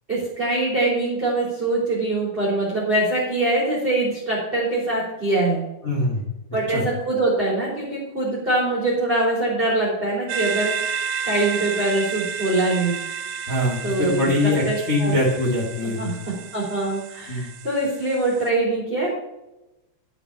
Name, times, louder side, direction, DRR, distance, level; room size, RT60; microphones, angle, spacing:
voice 1, 0.1-5.6 6.5-12.9 13.8-14.3 14.6-15.1 15.8-16.1 16.5-19.1, right 2 dB, 15° right, -6 dB, 2.6 m, -23 dB
voice 2, 5.8-6.2 6.7-6.8 13.5-16.1 17.3-17.5, left 1 dB, 75° left, -3 dB, 0.7 m, -23 dB
sound 1, 10.3-18.5, right 6 dB, 85° right, 2.9 m, -31 dB
11.5 x 7.0 x 5.5 m, 0.95 s
omnidirectional pair, 5.4 m